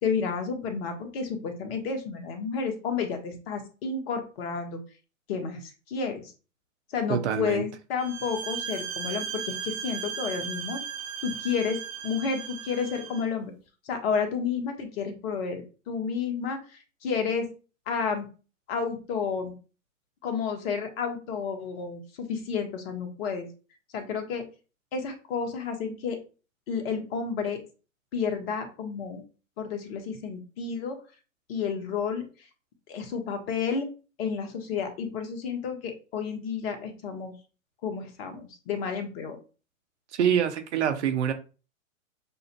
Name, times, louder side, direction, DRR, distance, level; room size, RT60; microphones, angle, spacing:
voice 1, 0.0-4.8 5.3-6.2 6.9-10.8 11.2-11.8 12.0-13.5 13.9-16.6 17.0-17.4 17.9-18.3 18.7-19.6 20.2-23.5 23.9-24.4 24.9-26.2 26.7-27.6 28.1-29.2 29.6-30.9 31.5-32.2 32.9-33.9 34.2-37.3 37.8-39.4, left 6 dB, 45° left, 5 dB, 1.3 m, -31 dB
voice 2, 7.1-7.6 40.1-41.3, right 9 dB, 55° right, 8 dB, 0.9 m, -25 dB
sound 1, 8.0-13.3, right 7 dB, 20° right, 0.5 m, -36 dB
6.7 x 2.6 x 2.2 m, 0.35 s
figure-of-eight pair, 105°, 41 cm